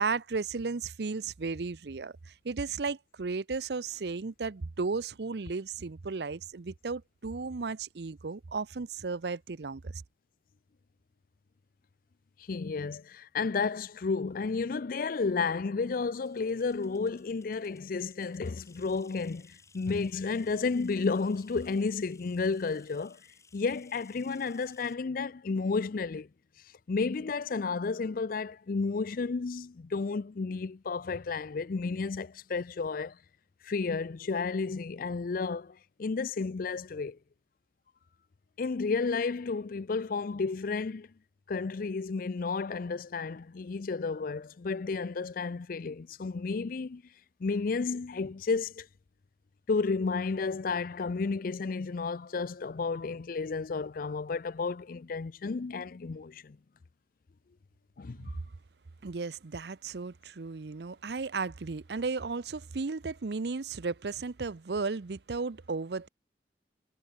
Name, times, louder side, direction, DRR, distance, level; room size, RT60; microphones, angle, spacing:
voice 1, 0.0-10.0 59.0-66.1, right 4 dB, 65° right, 0.6 m, -34 dB
voice 2, 12.5-23.2 23.5-26.3 26.9-33.2 33.6-37.2 38.6-41.1 41.5-47.0 47.4-48.9 49.7-56.6 58.0-58.3, left 4 dB, 55° left, 0.5 m, -32 dB
sound 1, 16.2-25.0, left 4 dB, 15° left, 6.6 m, -61 dB
head